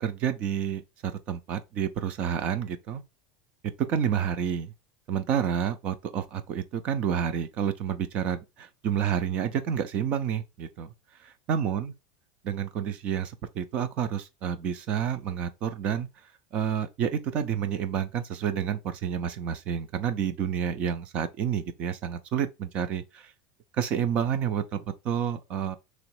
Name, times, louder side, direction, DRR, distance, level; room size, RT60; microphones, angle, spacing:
voice 1, 0.0-3.0 3.9-4.7 5.1-10.9 11.5-11.9 12.5-16.1 16.5-23.0 23.8-25.8, right 8 dB, 30° right, 0.5 m, -29 dB
3.1 x 3.0 x 4.6 m
supercardioid pair, 175°, 4 cm